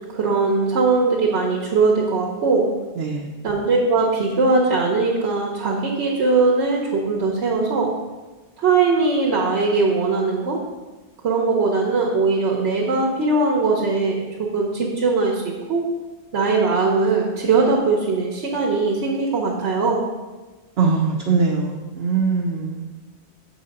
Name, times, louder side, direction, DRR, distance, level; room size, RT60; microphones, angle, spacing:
voice 1, 0.1-2.7 3.4-7.9 8.6-10.6 11.2-15.8 16.3-20.0, right 3 dB, 85° right, -2 dB, 1.2 m, -20 dB
voice 2, 20.8-22.9, right 4 dB, 65° right, -1 dB, 0.9 m, -21 dB
6.9 x 4.1 x 5.2 m, 1.2 s
omnidirectional pair, 1.1 m